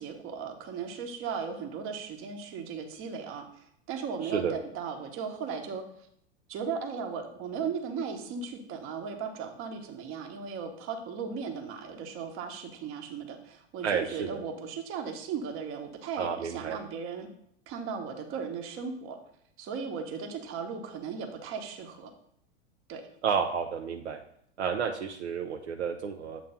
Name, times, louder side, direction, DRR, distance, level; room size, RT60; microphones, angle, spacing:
voice 1, 0.0-5.8 6.5-17.3 17.7-19.2 19.6-22.1 22.9-23.0, right 6 dB, 40° right, 4 dB, 1.2 m, -37 dB
voice 2, 4.2-4.6 13.8-14.4 16.2-16.8 23.2-24.2 24.6-26.4, right 6 dB, 75° right, 4 dB, 0.7 m, -31 dB
7.6 x 3.2 x 5.5 m, 0.70 s
figure-of-eight pair, 95°, 35 cm